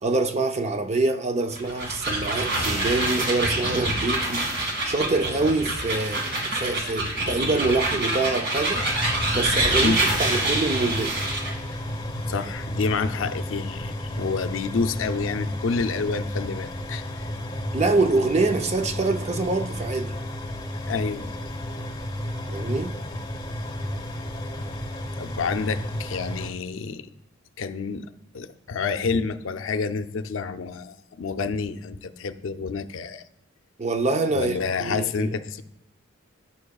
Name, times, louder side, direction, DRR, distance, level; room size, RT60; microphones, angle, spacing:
voice 1, 0.0-4.5 4.8-8.9 9.3-11.2 17.7-20.2 22.5-23.0 33.8-35.3, right 3 dB, 35° right, 0.5 m, -25 dB
sound 1, 1.5-11.6, right 2 dB, 60° right, 1.8 m, -26 dB
sound 2, 8.7-26.5, left 1 dB, 20° left, 0.8 m, -32 dB
voice 2, 12.3-17.3 20.9-21.3 25.1-27.1 27.6-28.1 28.3-33.2 34.3-35.6, left 4 dB, 70° left, 0.5 m, -28 dB
14.0 x 5.8 x 2.3 m
head